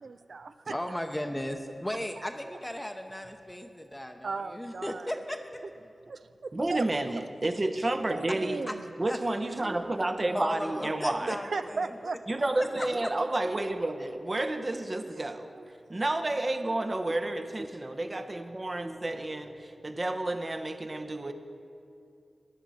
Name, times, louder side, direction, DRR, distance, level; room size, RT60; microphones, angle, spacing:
voice 1, 0.0-0.8 4.2-5.1 6.1-6.8 8.2-8.8 11.3-12.2 15.1-15.7 16.2-16.3 16.6-16.8 17.4-17.5, right 4 dB, 75° right, 10 dB, 0.4 m, -37 dB
voice 2, 0.7-5.6 8.7-8.8 9.1-9.2 10.3-12.0 12.6-12.9, equal, 10° left, 5 dB, 0.7 m, -36 dB
voice 3, 6.5-8.6 9.0-11.4 12.3-15.5 15.9-21.3, right 2 dB, 40° right, 7 dB, 0.9 m, -30 dB
14.5 x 10.5 x 4.2 m, 2.5 s
cardioid pair, 40°, 0 cm